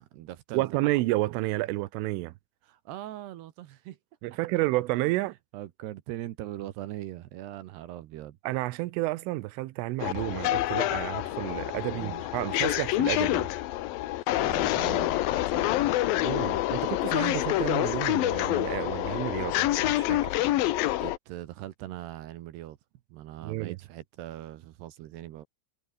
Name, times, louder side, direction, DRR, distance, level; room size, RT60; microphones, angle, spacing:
voice 1, 0.0-0.9 1.3-1.4 2.6-4.0 4.3-4.4 5.5-8.4 11.9-12.2 14.3-15.9 21.0-22.8 23.1-25.5, right 14 dB, 70° right, 2.8 m, -41 dB
voice 2, 0.5-2.3 4.2-5.3 8.4-13.5 16.2-20.4 23.4-23.8, right 19 dB, 90° right, 3.4 m, -30 dB
sound 1, 10.0-21.2, left 15 dB, 90° left, 2.0 m, -27 dB
omnidirectional pair, 5.7 m